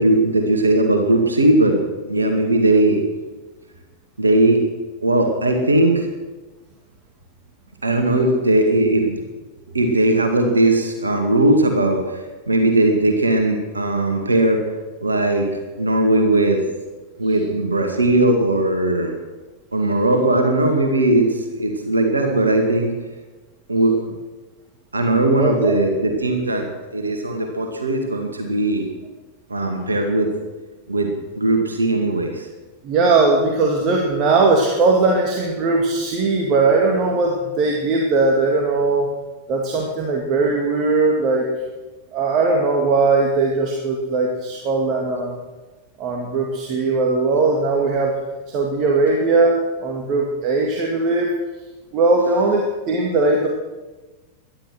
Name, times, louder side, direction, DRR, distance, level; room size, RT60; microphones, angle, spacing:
voice 1, 0.0-3.0 4.2-4.6 5.0-6.1 7.8-9.2 9.7-14.6 15.0-16.6 17.2-19.1 19.7-22.9 23.7-24.1 24.9-28.9 29.5-30.3 30.9-32.5, right 2 dB, 75° right, 4 dB, 2.2 m, -18 dB
voice 2, 25.3-25.7 32.8-39.1 39.5-41.5 42.1-45.4 46.0-48.2 48.5-51.3 51.9-53.5, right 3 dB, 40° right, 0 dB, 2.4 m, -19 dB
19.0 x 12.0 x 6.3 m, 1.2 s
figure-of-eight pair, 90°, 0 cm